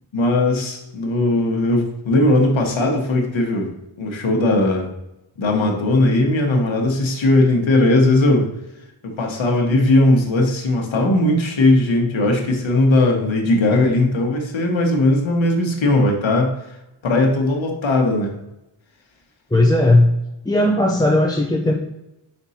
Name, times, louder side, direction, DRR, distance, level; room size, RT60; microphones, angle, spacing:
voice 1, 0.1-3.7 4.0-4.9 5.4-8.5 9.0-16.5 17.0-18.3, left 2 dB, 70° left, 1 dB, 1.2 m, -18 dB
voice 2, 19.5-20.1 20.4-21.7, left 1 dB, 10° left, 0 dB, 0.4 m, -16 dB
5.3 x 4.4 x 4.1 m, 0.90 s
wide cardioid pair, 130°, 49 cm